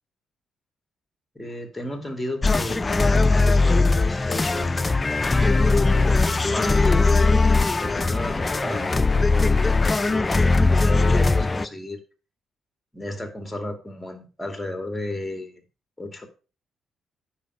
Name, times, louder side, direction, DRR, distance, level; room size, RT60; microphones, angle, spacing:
voice 1, 1.3-4.7 5.4-6.2 6.4-12.0 12.9-15.6 16.0-16.3, left 1 dB, 5° left, 5 dB, 2.5 m, -33 dB
sound 1, 2.4-11.7, left 3 dB, 25° left, 0.4 m, -20 dB
9.7 x 6.1 x 4.8 m, 0.34 s
cardioid pair, 90°, 0 cm